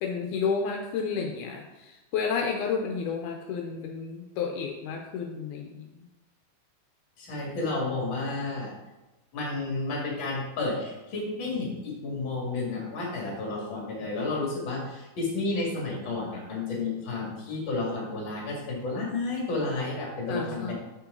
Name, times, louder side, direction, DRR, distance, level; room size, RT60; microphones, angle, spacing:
voice 1, 0.0-6.0 20.3-20.7, left 5 dB, 80° left, 2 dB, 2.1 m, -31 dB
voice 2, 7.2-8.7 9.3-20.7, left 3 dB, 40° left, -2 dB, 2.4 m, -31 dB
7.3 x 5.9 x 3.8 m, 1.0 s
omnidirectional pair, 3.6 m